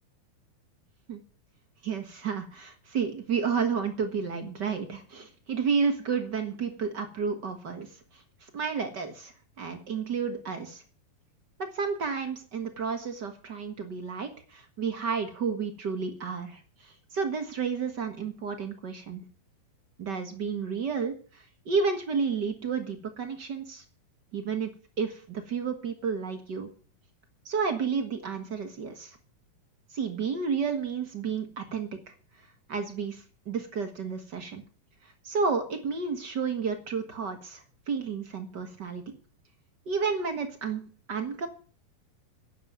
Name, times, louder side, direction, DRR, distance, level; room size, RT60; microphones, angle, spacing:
voice 1, 1.8-7.9 8.5-9.3 9.6-10.8 11.6-16.6 17.1-19.2 20.0-21.1 21.6-23.8 24.3-24.7 25.0-26.7 27.4-29.2 29.9-31.9 32.7-34.6 35.2-39.2 39.9-41.5, right 5 dB, 50° right, 6 dB, 1.3 m, -31 dB
11.0 x 8.4 x 9.3 m, 0.41 s
omnidirectional pair, 4.1 m